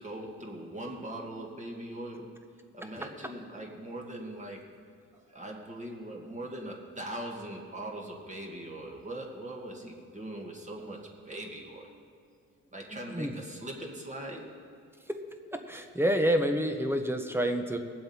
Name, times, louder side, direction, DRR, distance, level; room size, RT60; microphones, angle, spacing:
voice 1, 0.0-2.3 2.7-4.6 5.1-11.9 12.7-14.5, right 1 dB, 25° right, 0 dB, 1.9 m, -41 dB
voice 2, 12.9-13.3 15.1-15.2 15.5-17.8, equal, 5° right, 6 dB, 0.9 m, -29 dB
19.0 x 7.6 x 4.4 m, 2.2 s
cardioid pair, 100°, 31 cm